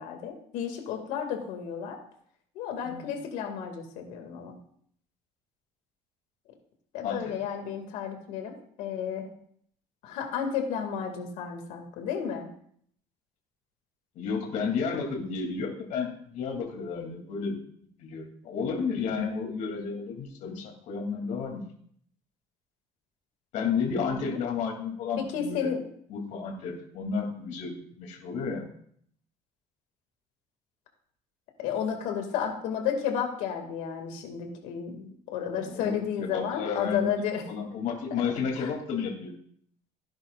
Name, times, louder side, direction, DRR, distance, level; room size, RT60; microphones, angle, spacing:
voice 1, 0.0-2.0 2.5-4.6 6.9-9.3 10.0-12.5 24.1-24.4 25.2-25.9 31.6-37.4 38.1-38.2 38.6-38.7, left 8 dB, 85° left, 4 dB, 2.3 m, -32 dB
voice 2, 14.1-17.6 18.0-21.6 23.5-25.7 26.1-28.6 35.5-37.1 37.5-39.3, left 5 dB, 70° left, 1 dB, 2.9 m, -32 dB
16.5 x 10.5 x 2.5 m, 0.64 s
cardioid pair, 120°, 13 cm